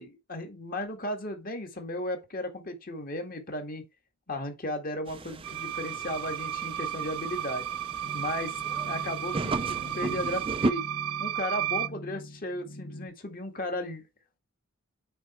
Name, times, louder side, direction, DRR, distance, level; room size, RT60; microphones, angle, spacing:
voice 1, 0.0-3.8 4.3-7.7 8.1-10.9 11.2-14.0, left 1 dB, 40° left, 2.0 m, -35 dB
sound 1, 5.1-10.7, right 2 dB, 25° right, 0.5 m, -36 dB
sound 2, 5.4-11.9, right 11 dB, 80° right, 0.5 m, -33 dB
sound 3, 8.0-13.1, equal, 80° left, 3.4 m, -45 dB
9.1 x 4.1 x 4.5 m
head